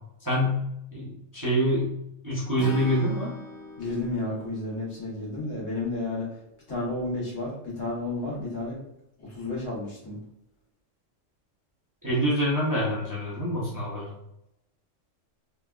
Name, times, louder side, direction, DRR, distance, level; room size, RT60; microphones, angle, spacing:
voice 1, 0.2-0.6 0.9-1.9 2.2-3.3 12.0-14.1, equal, 20° right, -8 dB, 0.5 m, -26 dB
Acoustic guitar / Strum, 2.6-5.8, left 1 dB, 50° left, 0.6 m, -41 dB
voice 2, 3.8-6.3 6.7-8.8 9.2-10.2, left 2 dB, 75° left, -5 dB, 1.5 m, -31 dB
3.3 x 2.2 x 2.3 m, 0.83 s
omnidirectional pair, 1.3 m